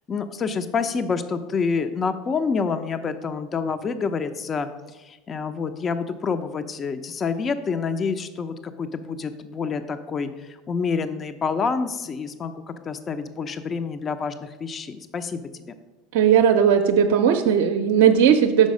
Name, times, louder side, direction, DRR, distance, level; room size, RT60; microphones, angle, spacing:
voice 1, 0.1-15.4, left 5 dB, 35° left, 10 dB, 0.4 m, -28 dB
voice 2, 16.1-18.7, right 8 dB, 70° right, 5 dB, 0.5 m, -17 dB
6.3 x 4.7 x 5.2 m, 1.1 s
hypercardioid pair, 85°, 0 cm